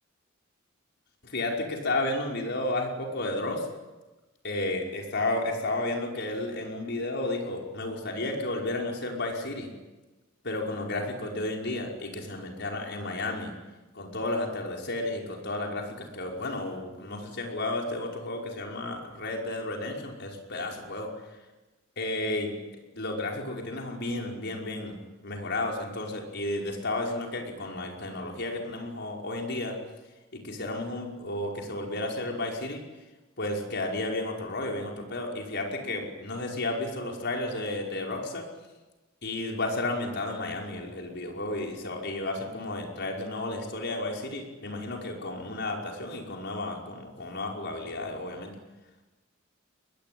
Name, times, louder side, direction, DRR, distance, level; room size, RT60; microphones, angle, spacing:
voice 1, 1.2-3.7 4.4-9.7 10.4-13.5 13.9-21.1 22.0-22.5 23.0-25.0 25.2-29.8 30.3-32.8 33.4-38.4 39.2-48.5, left 2 dB, 60° left, 0 dB, 5.5 m, -32 dB
24.5 x 20.5 x 9.6 m, 1.2 s
head